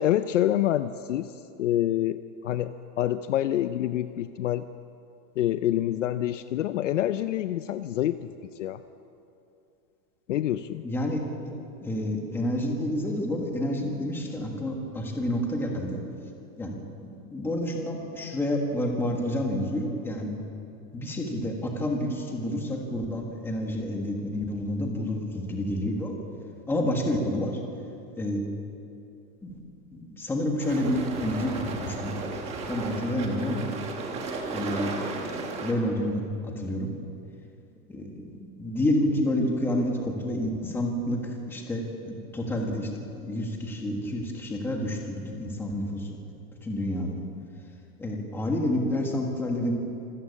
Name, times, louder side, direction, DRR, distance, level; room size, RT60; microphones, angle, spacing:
voice 1, 0.0-1.3 1.6-4.6 5.4-8.2 8.6-8.8 10.3-10.8, left 12 dB, 55° left, 12 dB, 0.6 m, -26 dB
voice 2, 10.8-11.5 11.8-16.0 16.6-20.3 20.9-26.1 26.7-27.5 28.2-28.4 29.4-29.5 29.9-32.1 32.7-33.7 34.5-36.9 37.9-41.2 41.5-46.1 46.6-47.1 48.0-49.8, left 1 dB, 5° left, 1 dB, 1.5 m, -29 dB
sound 1, 30.6-35.7, right 3 dB, 15° right, 1.4 m, -34 dB
26.0 x 13.5 x 8.5 m, 2.7 s
supercardioid pair, 180°, 46 cm